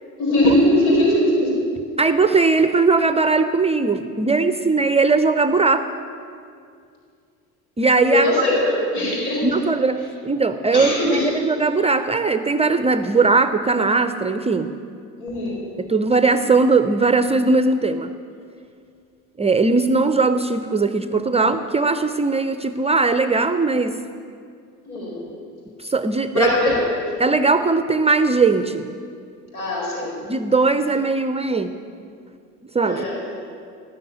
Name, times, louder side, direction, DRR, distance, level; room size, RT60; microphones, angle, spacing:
voice 1, 0.2-1.6 8.1-9.5 10.7-11.3 15.2-15.6 24.9-25.2 26.3-26.9 29.5-30.2 32.8-33.2, left 1 dB, 80° left, -3 dB, 4.6 m, -20 dB
voice 2, 2.0-5.8 7.8-8.3 9.4-14.7 15.8-18.1 19.4-24.0 25.8-26.8 27.2-28.9 30.3-31.7 32.7-33.1, right 3 dB, 15° right, 10 dB, 0.6 m, -19 dB
17.0 x 6.4 x 9.3 m, 2.3 s
hypercardioid pair, 70°, 42 cm